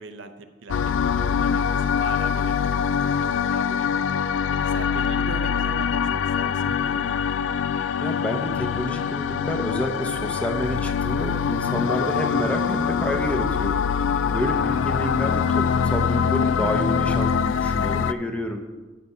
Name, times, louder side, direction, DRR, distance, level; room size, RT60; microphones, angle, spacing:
voice 1, 0.0-2.7 3.3-4.1 4.6-7.2, right 3 dB, 80° right, 8 dB, 0.7 m, -40 dB
sound 1, 0.7-18.1, left 7 dB, 90° left, 0.4 m, -24 dB
voice 2, 8.0-13.8 14.3-18.6, equal, 5° left, 4 dB, 0.7 m, -29 dB
12.5 x 4.2 x 5.6 m, 1.3 s
head